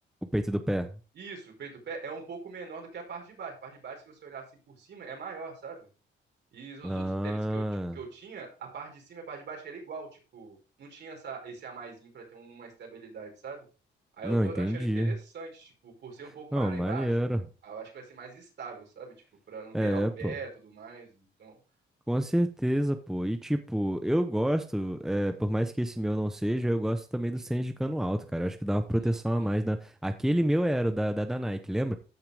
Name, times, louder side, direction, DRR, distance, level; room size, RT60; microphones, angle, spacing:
voice 1, 0.3-0.9 6.8-8.0 14.2-15.1 16.5-17.4 19.7-20.3 22.1-32.0, equal, ahead, 8 dB, 0.9 m, -28 dB
voice 2, 1.1-5.8 6.5-7.6 7.9-13.6 14.2-17.3 17.6-19.1 19.5-21.6 29.0-29.5, right 5 dB, 60° right, 1 dB, 4.8 m, -42 dB
14.0 x 5.7 x 3.5 m, 0.34 s
cardioid pair, 90°, 20 cm